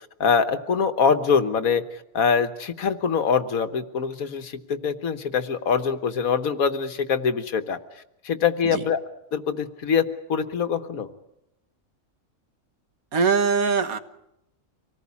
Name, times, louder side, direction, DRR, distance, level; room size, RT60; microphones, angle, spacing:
voice 1, 0.0-7.8 8.2-9.0 9.3-11.1, left 6 dB, 80° left, 10 dB, 1.7 m, -24 dB
voice 2, 13.1-14.0, right 5 dB, 90° right, 10 dB, 1.8 m, -21 dB
25.5 x 18.5 x 8.4 m, 0.84 s
omnidirectional pair, 1.4 m